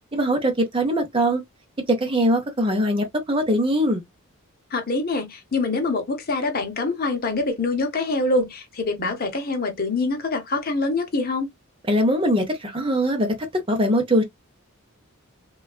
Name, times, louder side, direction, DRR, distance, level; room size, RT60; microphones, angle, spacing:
voice 1, 0.1-1.4 1.9-4.0 11.9-14.2, equal, 25° right, 0.7 m, -21 dB
voice 2, 4.7-11.5, left 3 dB, 40° left, 0.8 m, -25 dB
3.4 x 2.3 x 2.3 m
head